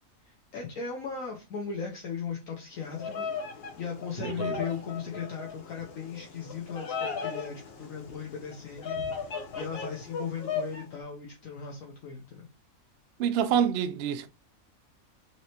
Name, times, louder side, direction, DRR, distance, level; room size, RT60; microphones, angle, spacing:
voice 1, 0.2-3.3 3.8-12.4, left 6 dB, 70° left, 1.2 m, -37 dB
Bird vocalization bird call bird song, 2.8-10.8, left 5 dB, 50° left, 0.8 m, -37 dB
voice 2, 4.2-4.7 13.2-14.3, right 8 dB, 65° right, 0.6 m, -27 dB
4.1 x 3.3 x 2.7 m
omnidirectional pair, 1.5 m